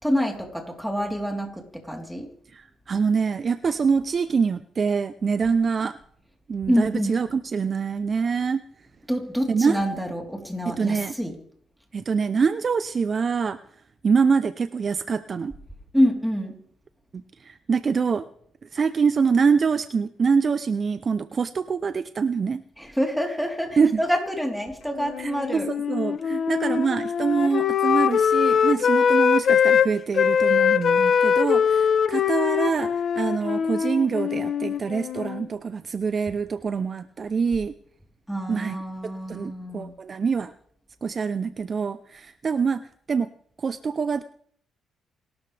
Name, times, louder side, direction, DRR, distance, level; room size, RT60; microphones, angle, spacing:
voice 1, 0.0-2.3 6.7-7.2 9.1-11.3 15.9-16.6 22.8-25.7 38.3-39.9, equal, ahead, 1 dB, 3.8 m, -26 dB
voice 2, 2.5-6.0 6.5-8.6 9.5-9.8 10.7-11.1 11.9-13.6 14.0-15.5 17.1-18.2 18.7-22.6 23.8-24.0 25.2-37.7 38.5-38.8 39.0-40.5 41.0-42.8 43.1-43.3 43.6-44.2, right 5 dB, 40° right, 12 dB, 0.7 m, -25 dB
Wind instrument woodwind instrument, 25.0-29.9 30.1-35.5, left 7 dB, 55° left, 1.0 m, -22 dB
28.0 x 13.0 x 3.5 m, 0.63 s
cardioid pair, 90°, 0 cm